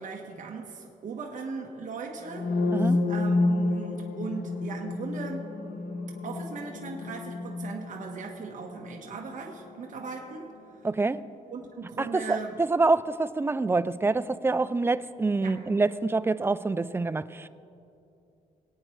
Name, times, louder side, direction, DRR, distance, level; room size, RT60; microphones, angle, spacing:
voice 1, 0.0-5.5 6.2-10.5 11.5-12.6 15.4-15.6, right 4 dB, 55° right, 0 dB, 1.2 m, -38 dB
sound 1, 2.3-10.1, left 2 dB, 85° left, 0.8 m, -30 dB
voice 2, 2.7-3.0 10.8-11.2 12.0-17.5, right 3 dB, 15° right, 14 dB, 0.3 m, -26 dB
23.5 x 8.9 x 3.2 m, 2.7 s
cardioid pair, 115°, 16 cm